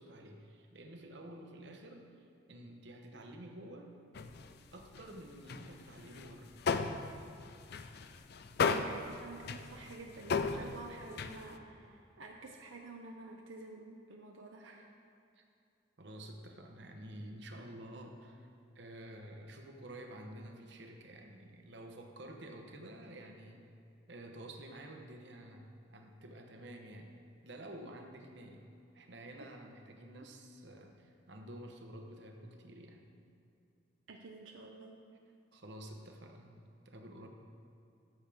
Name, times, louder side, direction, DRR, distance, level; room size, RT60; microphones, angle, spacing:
voice 1, 0.0-2.2 2.5-4.0 4.7-6.6 15.4-15.5 16.0-18.5 18.7-23.7 24.1-27.2 27.4-28.7 28.9-33.0 35.5-37.3, right 1 dB, 60° right, 3 dB, 1.0 m, -50 dB
sound 1, 4.1-5.1 5.5-11.6, left 5 dB, 55° left, 0.4 m, -36 dB
voice 2, 8.7-14.9 34.1-34.9, right 3 dB, 85° right, 1 dB, 0.7 m, -50 dB
13.5 x 7.3 x 3.5 m, 2.6 s
head